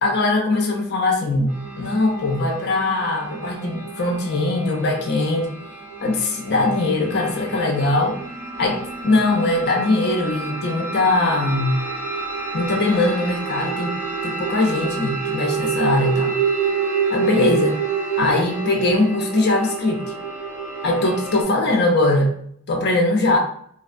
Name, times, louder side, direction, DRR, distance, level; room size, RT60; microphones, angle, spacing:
voice 1, 0.0-5.6 6.0-8.2 8.6-11.8 12.5-16.4 17.1-17.8 18.2-20.0 20.8-22.3 22.7-23.4, left 2 dB, 45° left, 1 dB, 0.5 m, -21 dB
sound 1, 1.5-21.4, right 5 dB, 10° right, 0.5 m, -28 dB
2.5 x 2.2 x 2.5 m, 0.63 s
head